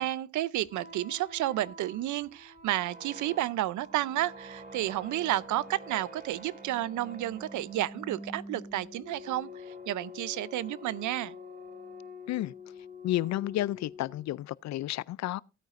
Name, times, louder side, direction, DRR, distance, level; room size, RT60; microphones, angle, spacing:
voice 1, 0.0-11.3, right 14 dB, 75° right, 0.6 m, -31 dB
sound 1, 0.6-14.4, left 2 dB, 35° right, 6.9 m, -47 dB
voice 2, 13.0-15.4, left 15 dB, 65° left, 0.4 m, -31 dB
16.0 x 9.0 x 2.5 m
cardioid pair, 90°, 30 cm